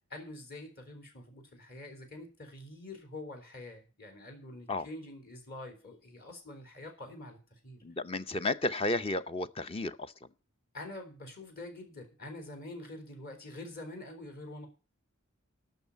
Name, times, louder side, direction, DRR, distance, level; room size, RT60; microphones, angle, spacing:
voice 1, 0.1-7.8 10.7-14.7, left 2 dB, 45° left, 3.5 m, -46 dB
voice 2, 7.8-10.1, left 2 dB, 25° left, 0.6 m, -32 dB
13.0 x 6.4 x 8.4 m
head